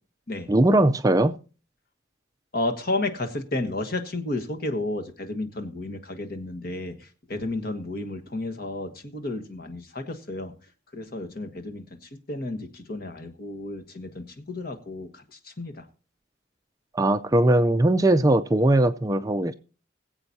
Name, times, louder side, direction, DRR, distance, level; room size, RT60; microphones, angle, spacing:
voice 1, 0.5-1.3 16.9-19.5, right 1 dB, 20° right, 0.4 m, -20 dB
voice 2, 2.5-7.0 7.3-10.5 10.9-11.8 12.3-15.8, left 2 dB, 50° left, 1.4 m, -32 dB
21.5 x 7.9 x 2.7 m
head